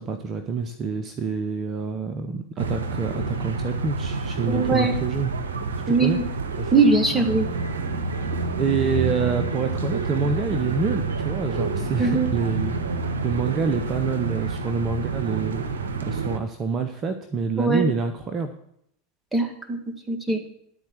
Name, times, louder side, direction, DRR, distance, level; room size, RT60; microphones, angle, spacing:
voice 1, 0.0-5.3 5.9-6.2 6.6-6.7 7.1-7.3 8.6-12.8 13.2-15.6 16.0-18.5, right 5 dB, 35° right, 8 dB, 0.7 m, -27 dB
sound 1, 2.6-16.4, right 4 dB, 75° right, 0.7 m, -28 dB
voice 2, 4.5-5.0 5.9-6.2 6.7-7.5 12.0-12.3 17.6-17.8 19.3-19.8 20.1-20.4, right 3 dB, 5° right, 3 dB, 1.5 m, -21 dB
11.0 x 4.3 x 7.3 m, 0.73 s
figure-of-eight pair, 85°, 0 cm